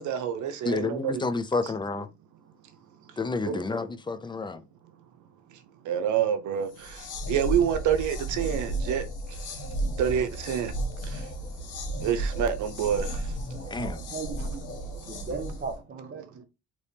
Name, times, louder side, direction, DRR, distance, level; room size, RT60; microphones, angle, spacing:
voice 1, 0.0-1.2 3.4-3.6 5.9-6.7 7.3-9.0 10.0-10.7 12.0-13.1, right 9 dB, 75° right, 0.7 m, -27 dB
voice 2, 0.7-2.1 3.2-4.6 13.7-14.0, left 3 dB, 15° left, 0.4 m, -30 dB
sound 1, 6.7-15.8, right 1 dB, 90° left, 1.1 m, -33 dB
voice 3, 13.6-14.5 15.1-16.4, right 5 dB, 30° right, 0.8 m, -38 dB
3.4 x 3.0 x 2.7 m
cardioid pair, 90°, 30 cm